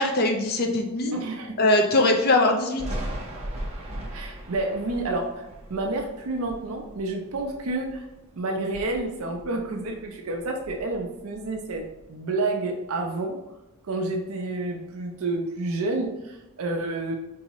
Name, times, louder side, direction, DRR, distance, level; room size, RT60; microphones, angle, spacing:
voice 1, 0.0-1.1 1.6-2.8, left 2 dB, 45° left, 3 dB, 0.5 m, -21 dB
voice 2, 1.1-1.6 4.1-8.1 8.4-13.4 13.9-17.2, right 2 dB, 70° right, 2 dB, 0.6 m, -29 dB
Thunder, 2.8-8.2 8.6-10.0 10.3-12.0, right 1 dB, 30° right, 0.8 m, -38 dB
4.6 x 2.7 x 3.0 m, 0.97 s
head